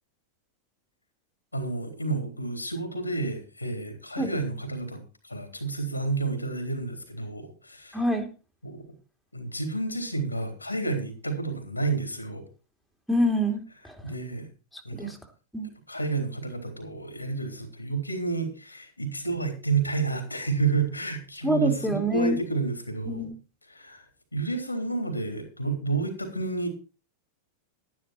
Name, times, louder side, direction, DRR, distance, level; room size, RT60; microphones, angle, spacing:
voice 1, 1.5-8.0 8.6-8.8 9.3-12.5 14.0-14.5 14.8-15.1 15.9-23.3 23.7-24.1 24.3-26.7, right 3 dB, 85° left, 6 dB, 3.6 m, -30 dB
voice 2, 7.9-8.3 13.1-14.0 14.7-15.2 15.5-15.7 21.4-22.4 23.1-23.3, equal, ahead, 2 dB, 2.9 m, -26 dB
12.5 x 11.0 x 4.4 m, 0.33 s
figure-of-eight pair, 90°, 0 cm